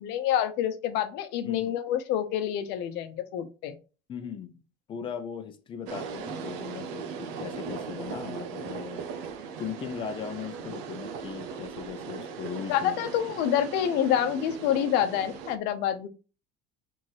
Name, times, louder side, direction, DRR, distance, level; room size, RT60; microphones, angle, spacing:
voice 1, 0.0-3.7 12.7-16.1, left 10 dB, 60° left, 0.9 m, -27 dB
voice 2, 1.4-1.7 4.1-4.6 4.9-9.1 9.6-13.0, left 7 dB, 25° left, 0.7 m, -38 dB
sound 1, 5.9-15.6, right 6 dB, 70° right, 0.7 m, -38 dB
4.5 x 3.6 x 3.1 m
cardioid pair, 170°, 20 cm